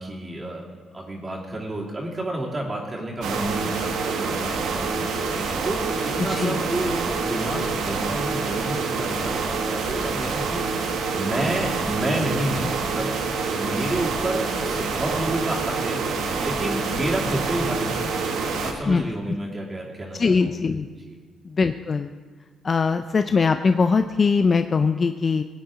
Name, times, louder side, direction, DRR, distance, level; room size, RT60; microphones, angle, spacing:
voice 1, 0.0-10.6 11.1-13.1 13.5-18.2 18.6-20.5 21.0-21.2, right 1 dB, 30° right, -3 dB, 2.5 m, -30 dB
sound 1, 3.2-18.7, right 4 dB, 80° right, 1.2 m, -27 dB
voice 2, 6.2-6.6 18.8-19.1 20.2-20.9 21.4-22.1 22.6-25.4, left 4 dB, 40° left, 9 dB, 0.4 m, -21 dB
17.5 x 8.7 x 3.8 m, 1.5 s
supercardioid pair, 60°, 0 cm